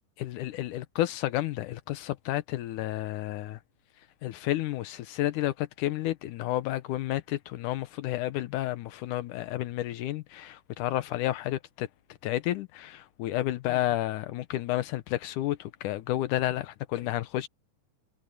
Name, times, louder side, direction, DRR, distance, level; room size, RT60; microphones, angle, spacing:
voice 1, 0.2-3.6 4.2-11.9 12.2-17.5, left 15 dB, 85° left, 2.3 m, -31 dB
omnidirectional pair, 3.6 m